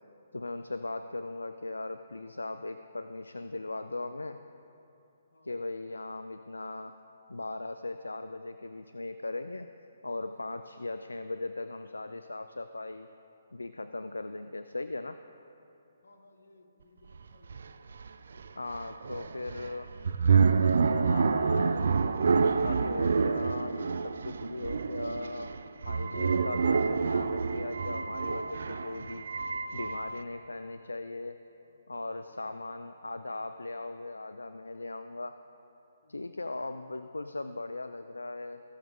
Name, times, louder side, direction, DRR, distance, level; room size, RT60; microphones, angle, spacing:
voice 1, 0.3-4.4 5.4-7.0 7.3-9.7 10.0-13.1 13.5-15.2 18.6-19.9 20.6-25.6 25.8-31.4 31.9-35.4 36.1-38.6, left 2 dB, 90° left, 10 dB, 0.3 m, -38 dB
voice 2, 16.0-17.8 18.2-19.0 36.0-36.1, left 2 dB, 75° left, 4 dB, 1.3 m, -62 dB
sound 1, 17.1-17.2 17.5-30.2, right 5 dB, 65° right, 0.4 m, -28 dB
16.0 x 6.5 x 3.6 m, 2.8 s
figure-of-eight pair, 140°, 0 cm